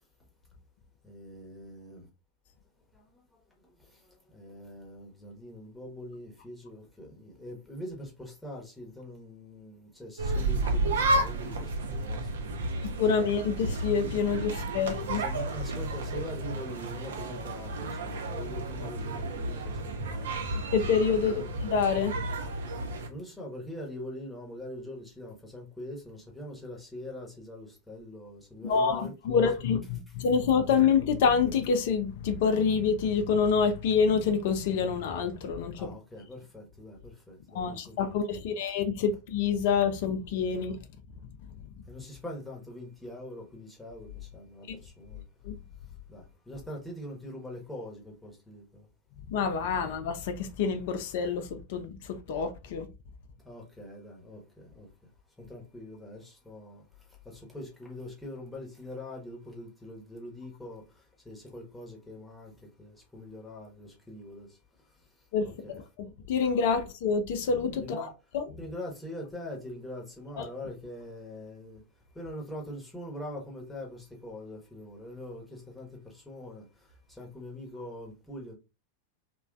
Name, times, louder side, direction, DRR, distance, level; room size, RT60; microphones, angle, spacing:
voice 1, 1.0-2.1 2.9-3.4 3.8-12.8 15.2-20.7 21.2-21.5 23.1-29.5 30.1-30.2 35.8-38.6 41.9-45.2 46.1-48.9 53.4-54.9 55.4-64.6 64.9-65.8 67.8-68.1 68.6-71.8 72.1-78.5, left 1 dB, 5° left, 0.9 m, -43 dB
sound 1, 10.2-23.1, right 2 dB, 60° right, 0.5 m, -32 dB
voice 2, 12.8-15.2 20.7-22.1 28.6-35.9 37.5-40.8 45.4-45.5 49.3-52.9 65.3-65.5 66.0-68.1 68.3-68.4 70.4-70.5, left 6 dB, 50° left, 0.4 m, -27 dB
3.0 x 2.2 x 2.4 m
figure-of-eight pair, 90°, 0 cm